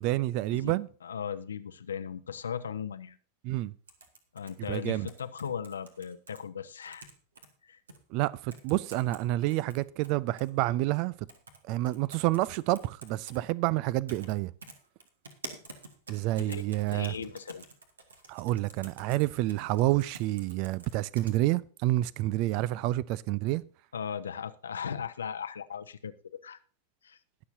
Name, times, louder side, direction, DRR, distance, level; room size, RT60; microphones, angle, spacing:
voice 1, 0.0-0.9 3.4-3.7 4.7-5.1 8.1-11.1 11.7-14.5 16.1-17.1 18.3-23.6, right 17 dB, 45° right, 0.5 m, -28 dB
voice 2, 1.0-3.2 4.3-7.1 7.6-7.8 16.4-17.6 23.9-26.1 26.4-26.6 27.0-27.2, left 7 dB, 70° left, 0.8 m, -37 dB
sound 1, 3.9-6.4 6.8-7.5 7.9-8.0 8.5-9.2 9.5-10.5 11.3-11.6 11.9-13.4 14.1-14.3 14.6-21.3, right 3 dB, 70° right, 1.9 m, -48 dB
21.0 x 7.0 x 2.7 m
figure-of-eight pair, 90°, 0 cm